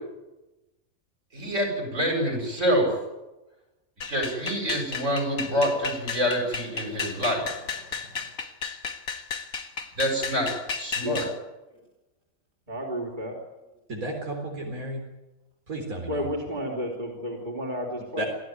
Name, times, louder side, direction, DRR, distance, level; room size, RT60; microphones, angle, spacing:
voice 1, 1.3-2.9 4.1-8.1 10.0-10.5 10.8-11.3, equal, 60° right, 1 dB, 8.4 m, -27 dB
sound 1, 4.0-11.4, left 5 dB, 85° left, 2.2 m, -34 dB
voice 2, 12.7-13.3 16.1-18.2, equal, 30° right, 0 dB, 3.8 m, -31 dB
voice 3, 13.9-15.0 15.7-16.3 18.2-18.3, right 1 dB, 80° right, 0 dB, 4.3 m, -33 dB
26.0 x 15.0 x 9.6 m, 1.0 s
omnidirectional pair, 1.5 m